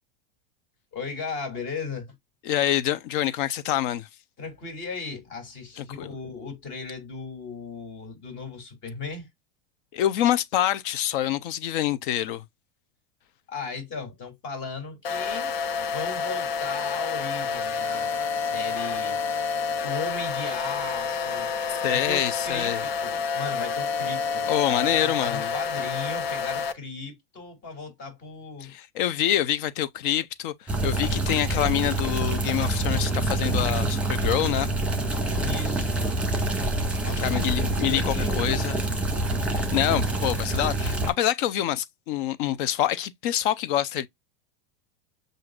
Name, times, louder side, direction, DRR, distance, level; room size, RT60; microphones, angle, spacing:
voice 1, 0.9-2.1 4.4-9.3 13.5-19.2 19.8-21.5 21.8-28.7 35.4-36.1 37.0-38.4, left 4 dB, 40° left, 2.8 m, -36 dB
voice 2, 2.4-4.1 5.8-6.1 9.9-12.4 21.7-22.8 24.5-25.5 28.7-34.7 37.2-38.8 39.5-44.1, left 12 dB, 55° left, 0.7 m, -26 dB
sound 1, 15.0-26.7, left 5 dB, 85° left, 1.2 m, -29 dB
sound 2, 30.7-41.1, right 2 dB, 5° right, 1.7 m, -26 dB
7.6 x 2.6 x 2.4 m
supercardioid pair, 155°, 30 cm